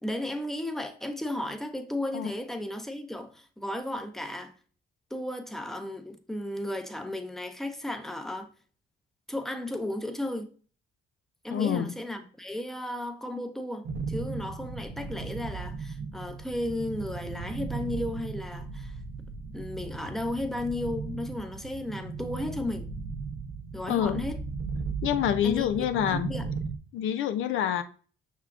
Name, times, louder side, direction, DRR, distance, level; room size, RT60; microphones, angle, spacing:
voice 1, 0.0-4.5 5.1-8.5 9.3-10.5 11.4-18.9 19.5-22.9 23.7-24.4 25.4-26.5, left 1 dB, ahead, 0.6 m, -34 dB
voice 2, 11.5-11.9 23.9-24.2 25.0-26.3 26.9-27.8, left 10 dB, 80° left, 0.5 m, -27 dB
sound 1, 13.8-26.8, right 4 dB, 70° right, 0.7 m, -36 dB
5.6 x 3.7 x 2.4 m
cardioid pair, 90°, 20 cm